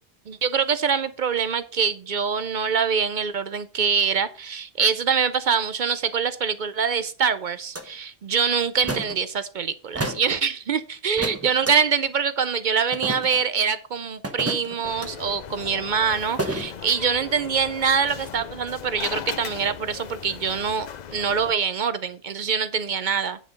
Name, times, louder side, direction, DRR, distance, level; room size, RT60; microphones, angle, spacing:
voice 1, 0.3-23.4, right 6 dB, 55° right, 13 dB, 0.6 m, -24 dB
sound 1, 7.8-7.9 8.8-9.2 9.9-10.3 11.2-11.7 12.9-13.4 14.2-15.1 16.4-16.7, right 1 dB, 15° right, 0.9 m, -30 dB
sound 2, 14.8-21.5, left 8 dB, 50° left, 0.6 m, -38 dB
9.3 x 5.8 x 5.2 m, 0.40 s
omnidirectional pair, 1.1 m